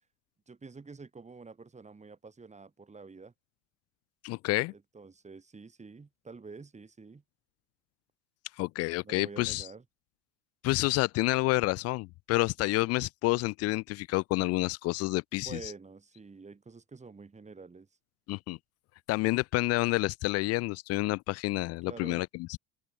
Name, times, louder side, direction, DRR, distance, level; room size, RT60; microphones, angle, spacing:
voice 1, 0.5-3.3 4.7-7.2 9.0-9.8 15.3-17.9 21.9-22.2, right 4 dB, 20° right, 5.6 m, -48 dB
voice 2, 4.2-4.7 8.6-9.7 10.6-15.7 18.3-18.6 19.1-22.6, left 21 dB, 45° left, 0.5 m, -29 dB
open air
hypercardioid pair, 75°, 35 cm